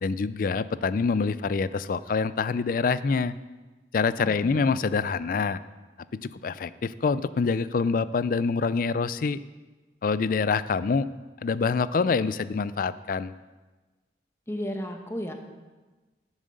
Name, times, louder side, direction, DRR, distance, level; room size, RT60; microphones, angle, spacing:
voice 1, 0.0-3.4 3.9-5.6 6.1-9.4 10.0-11.1 11.4-13.3, left 4 dB, 50° left, 16 dB, 0.4 m, -26 dB
voice 2, 4.2-4.8 14.5-15.3, equal, 15° left, 4 dB, 1.0 m, -34 dB
10.5 x 7.3 x 6.5 m, 1.2 s
head